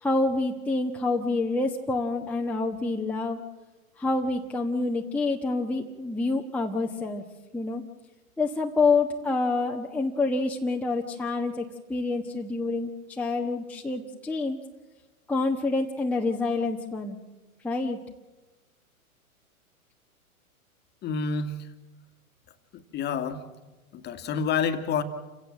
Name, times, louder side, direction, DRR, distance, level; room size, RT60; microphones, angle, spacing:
voice 1, 0.0-3.4 4.0-7.2 7.5-7.8 8.4-14.6 15.3-17.2 17.6-18.0, left 3 dB, 5° left, -1 dB, 1.2 m, -27 dB
voice 2, 21.0-21.7 22.9-23.4 23.9-25.0, left 6 dB, 25° left, 9 dB, 1.9 m, -28 dB
29.0 x 16.5 x 7.6 m, 1.2 s
hypercardioid pair, 120°, 43 cm